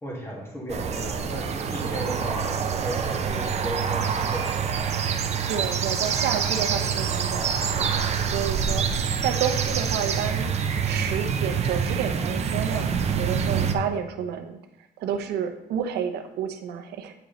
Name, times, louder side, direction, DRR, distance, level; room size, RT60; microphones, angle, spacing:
voice 1, 0.0-4.8, equal, 15° left, -2 dB, 2.1 m, -35 dB
sound 1, 0.7-13.7, right 7 dB, 40° right, 0.7 m, -26 dB
voice 2, 5.5-7.9 8.3-10.5 10.8-14.6 15.0-17.1, right 8 dB, 75° right, 7 dB, 0.8 m, -30 dB
8.8 x 4.9 x 4.0 m, 0.84 s
cardioid pair, 110°, 17 cm